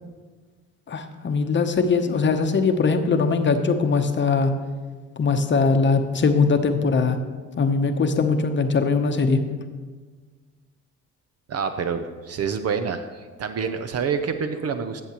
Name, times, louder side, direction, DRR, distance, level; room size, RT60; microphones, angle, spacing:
voice 1, 0.9-4.5 5.2-7.2 7.6-9.4, left 4 dB, 40° left, 7 dB, 0.8 m, -21 dB
voice 2, 11.5-15.0, right 6 dB, 55° right, 8 dB, 0.6 m, -27 dB
13.0 x 7.1 x 3.0 m, 1.4 s
cardioid pair, 90°, 30 cm